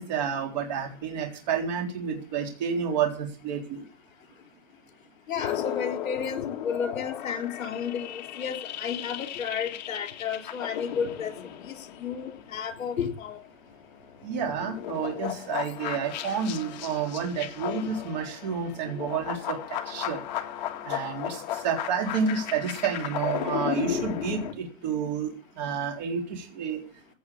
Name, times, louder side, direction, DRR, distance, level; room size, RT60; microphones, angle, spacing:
voice 1, 0.0-3.8 14.2-19.6 19.9-20.2 20.8-26.8, right 6 dB, 30° right, 3.9 m, -30 dB
voice 2, 5.3-11.3 11.7-13.4, left 7 dB, 75° left, 3.7 m, -32 dB
sound 1, 5.4-13.3 13.7-24.5, left 10 dB, 35° left, 1.9 m, -35 dB
16.5 x 6.9 x 8.6 m
hypercardioid pair, 180°, 40 cm